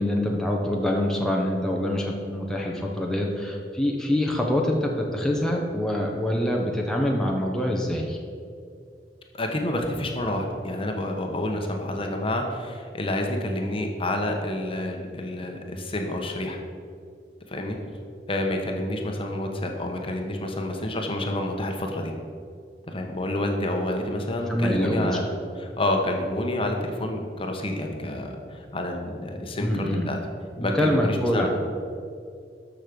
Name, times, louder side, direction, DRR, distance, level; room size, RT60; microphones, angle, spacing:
voice 1, 0.0-8.2 24.5-25.1 29.5-30.1 30.6-31.5, left 1 dB, 5° left, -1 dB, 1.0 m, -25 dB
voice 2, 9.3-16.6 17.5-17.8 18.3-22.1 22.9-25.3 25.5-30.2 30.6-31.5, left 1 dB, 30° left, 3 dB, 1.2 m, -28 dB
13.0 x 6.4 x 5.3 m, 2.3 s
head